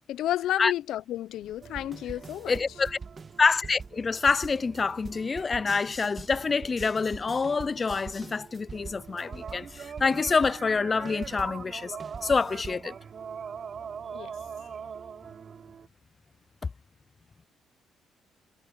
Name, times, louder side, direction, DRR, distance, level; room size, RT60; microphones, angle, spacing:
voice 1, 0.1-2.6 14.1-14.3, left 13 dB, 80° left, 0.6 m, -31 dB
sound 1, 1.4-11.6 12.0-12.9, right 5 dB, 35° right, 1.6 m, -44 dB
sound 2, 1.6-15.9, right 7 dB, 50° right, 3.9 m, -44 dB
voice 2, 2.5-3.0 3.4-12.0 12.2-12.9, left 4 dB, 35° left, 0.3 m, -26 dB
cardioid pair, 90°, 0 cm